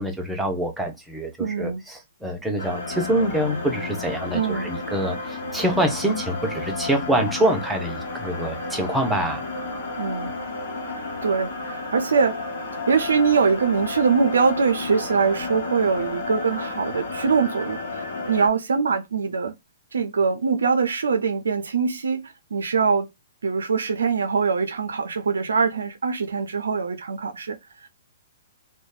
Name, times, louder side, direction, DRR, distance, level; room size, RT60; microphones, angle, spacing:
voice 1, 0.0-9.4, right 1 dB, 5° right, 0.7 m, -25 dB
voice 2, 1.4-1.8 4.3-4.7 10.0-10.3 11.2-12.4 12.9-19.5 19.9-23.1 23.4-27.6 27.8-27.9, right 5 dB, 75° right, 0.4 m, -23 dB
sound 1, 2.6-18.5, left 3 dB, 65° left, 0.9 m, -32 dB
3.0 x 2.1 x 2.3 m
figure-of-eight pair, 120°, 0 cm